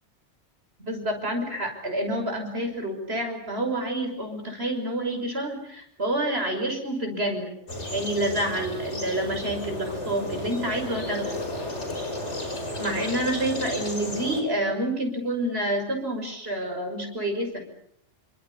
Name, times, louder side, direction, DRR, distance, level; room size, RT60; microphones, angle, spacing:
voice 1, 0.8-7.5 7.9-11.4 12.7-17.6, right 1 dB, 55° right, 4 dB, 6.5 m, -28 dB
sound 1, 7.7-14.4, left 1 dB, 65° left, 5.9 m, -33 dB
28.5 x 26.5 x 7.2 m, 0.70 s
omnidirectional pair, 1.3 m